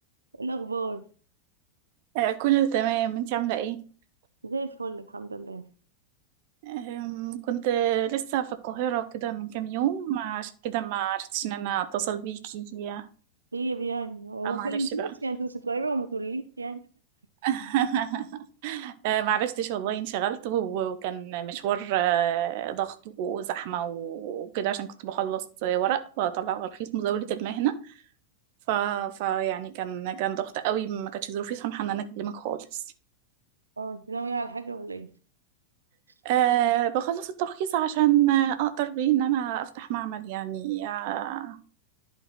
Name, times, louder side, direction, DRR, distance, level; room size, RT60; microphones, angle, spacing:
voice 1, 0.4-1.0 4.4-5.6 13.5-16.8 33.8-35.1, right 3 dB, 80° right, 0.6 m, -32 dB
voice 2, 2.1-3.8 6.6-13.1 14.4-15.1 17.4-27.9 28.7-32.8 36.2-41.6, right 11 dB, 50° right, 0.7 m, -28 dB
11.0 x 4.6 x 4.0 m
figure-of-eight pair, 90°, 0 cm